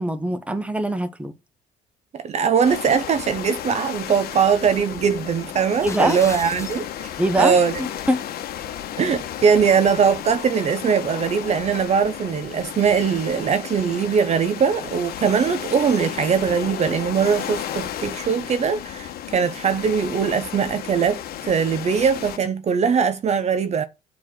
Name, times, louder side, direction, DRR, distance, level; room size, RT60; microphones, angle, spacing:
voice 1, 0.0-1.3 5.8-6.2 7.2-8.2, right 1 dB, 5° right, 1.1 m, -23 dB
voice 2, 2.1-7.1 7.4-7.7 9.0-23.8, right 6 dB, 40° right, 0.8 m, -21 dB
sound 1, 2.6-22.4, left 10 dB, 65° left, 1.3 m, -33 dB
sound 2, 5.6-6.9, left 4 dB, 15° left, 1.1 m, -36 dB
7.4 x 4.2 x 6.4 m
cardioid pair, 110°, 17 cm